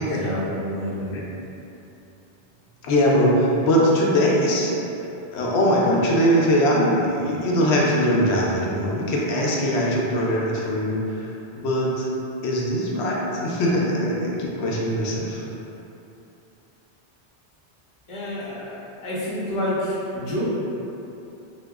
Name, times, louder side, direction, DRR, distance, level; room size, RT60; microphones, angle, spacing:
voice 1, 0.1-1.2 18.1-20.4, equal, 35° left, -9 dB, 0.7 m, -28 dB
voice 2, 2.8-4.7 5.3-12.1 12.4-15.4, equal, 85° left, -4 dB, 0.9 m, -21 dB
2.9 x 2.3 x 3.4 m, 2.9 s
omnidirectional pair, 1.1 m